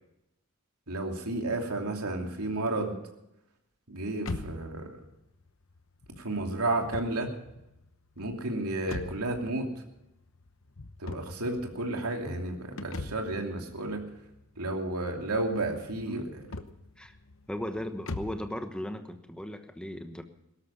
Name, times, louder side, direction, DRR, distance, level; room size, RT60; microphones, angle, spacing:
voice 1, 0.9-3.0 3.9-5.0 6.2-7.3 8.2-9.8 11.0-14.0 14.6-16.6, right 2 dB, 90° right, 2 dB, 2.8 m, -32 dB
sound 1, 4.2-18.5, left 2 dB, 60° left, 1.0 m, -43 dB
voice 2, 17.5-20.2, left 1 dB, 5° left, 7 dB, 1.1 m, -37 dB
17.5 x 13.0 x 5.7 m, 0.85 s
head